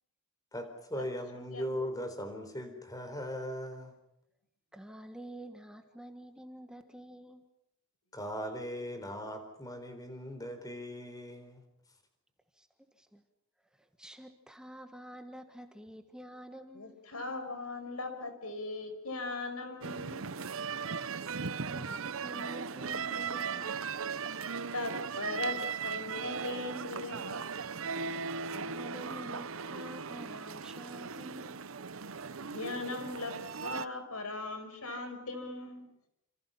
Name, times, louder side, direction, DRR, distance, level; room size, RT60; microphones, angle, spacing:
voice 1, 0.5-3.9 8.1-11.6, equal, 15° left, 7 dB, 4.0 m, -39 dB
voice 2, 1.4-1.7 16.7-20.2 24.7-27.4 32.5-35.9, left 2 dB, 85° left, 8 dB, 5.3 m, -39 dB
voice 3, 4.7-7.5 12.5-12.7 12.9-13.2 13.7-17.0 21.3-23.8 28.5-31.7, right 1 dB, 5° right, 6 dB, 1.5 m, -48 dB
sound 1, 19.8-33.9, right 5 dB, 70° right, 0.9 m, -38 dB
29.0 x 27.0 x 5.8 m, 0.78 s
head